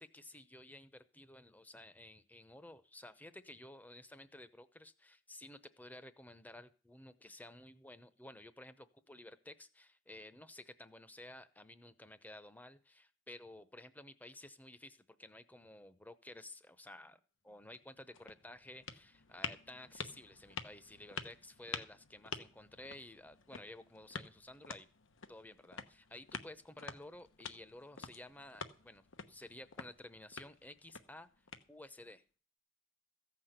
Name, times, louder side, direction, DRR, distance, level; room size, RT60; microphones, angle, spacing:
voice 1, 0.0-24.9 25.3-31.3 31.7-32.2, left 1 dB, 10° left, 13 dB, 0.8 m, -53 dB
sound 1, 17.6-32.1, left 6 dB, 85° left, 1.1 m, -49 dB
15.0 x 6.0 x 8.0 m, 0.38 s
head